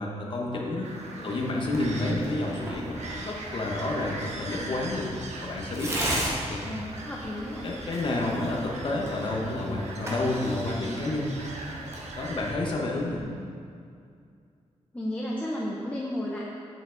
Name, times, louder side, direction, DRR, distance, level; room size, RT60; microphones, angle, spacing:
voice 1, 0.0-0.9 1.2-5.1 5.4-6.2 6.5-6.6 7.6-11.5 12.2-13.2, left 2 dB, 45° left, -2 dB, 1.1 m, -30 dB
sound 1, 0.8-12.5, right 2 dB, 80° right, 1.0 m, -41 dB
voice 2, 1.0-1.4 6.6-7.7 13.1-13.5 14.9-16.4, left 1 dB, 10° left, -5 dB, 0.7 m, -34 dB
Tearing, 1.6-13.2, right 1 dB, 25° right, 1.4 m, -38 dB
7.9 x 7.3 x 3.9 m, 2.3 s
wide cardioid pair, 180°, 11 cm